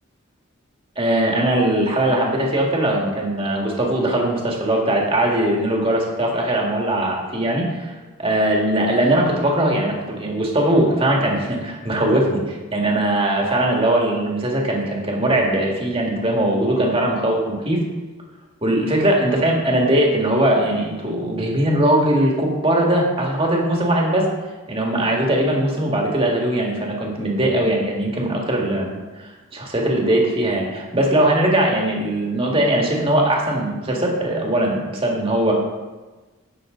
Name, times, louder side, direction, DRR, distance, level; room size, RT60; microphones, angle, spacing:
voice 1, 1.0-17.8 18.6-24.3 24.7-35.5, right 1 dB, 25° right, -1 dB, 2.0 m, -20 dB
16.0 x 6.5 x 3.9 m, 1.2 s
head